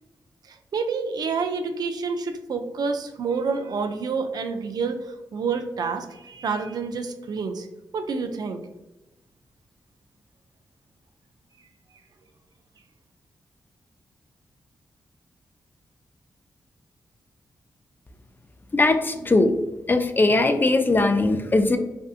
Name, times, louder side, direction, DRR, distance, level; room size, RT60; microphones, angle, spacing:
voice 1, 0.5-7.7 7.9-8.6, right 5 dB, 65° right, 6 dB, 0.3 m, -28 dB
voice 2, 18.7-19.5 19.9-21.8, left 2 dB, 30° left, 7 dB, 0.3 m, -20 dB
2.6 x 2.5 x 2.4 m, 1.0 s
cardioid pair, 50°, 7 cm